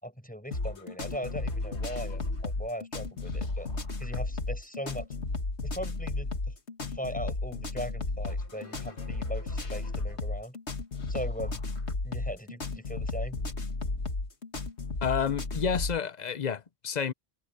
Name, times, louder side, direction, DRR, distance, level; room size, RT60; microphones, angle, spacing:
voice 1, 0.0-3.7 4.0-5.1 5.6-6.5 6.8-10.6 11.1-11.6 12.0-13.4, equal, 5° left, 8.0 m, -39 dB
sound 1, 0.5-16.0, left 3 dB, 80° left, 2.5 m, -34 dB
voice 2, 15.0-17.1, left 7 dB, 45° left, 0.8 m, -30 dB
omnidirectional pair, 1.1 m